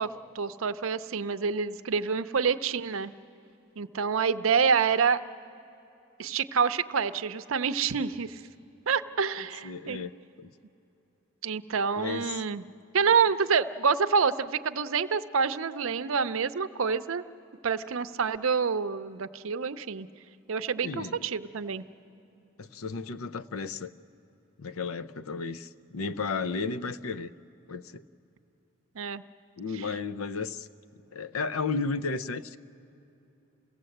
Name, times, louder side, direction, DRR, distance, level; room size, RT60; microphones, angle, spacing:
voice 1, 0.0-3.1 3.8-5.2 6.2-8.4 8.9-10.0 11.4-12.6 12.9-17.2 17.6-20.1 20.5-21.8 29.0-29.2 29.7-29.9, right 6 dB, 75° right, 12 dB, 0.6 m, -27 dB
voice 2, 9.4-10.1 10.4-10.5 11.9-12.4 20.8-21.2 22.6-23.9 24.6-27.3 27.7-28.0 29.6-30.7 31.1-32.6, left 4 dB, 90° left, 12 dB, 0.6 m, -33 dB
28.5 x 16.5 x 7.9 m, 2.8 s
head